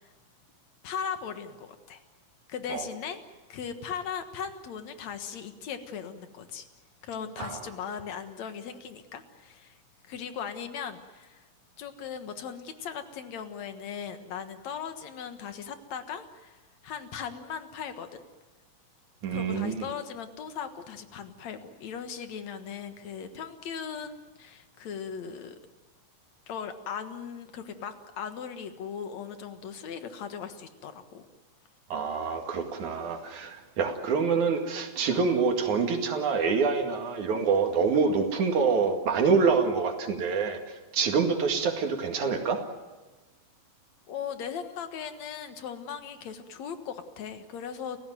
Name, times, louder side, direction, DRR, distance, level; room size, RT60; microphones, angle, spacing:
voice 1, 0.8-2.0 2.5-3.2 3.5-6.7 7.0-9.8 10.1-11.5 11.8-18.2 19.3-25.6 26.5-31.3 44.1-48.0, left 7 dB, 70° left, 8 dB, 2.8 m, -38 dB
voice 2, 19.2-19.9 31.9-40.6 40.9-42.6, right 5 dB, 75° right, 4 dB, 3.6 m, -26 dB
29.5 x 15.5 x 9.2 m, 1.2 s
omnidirectional pair, 3.4 m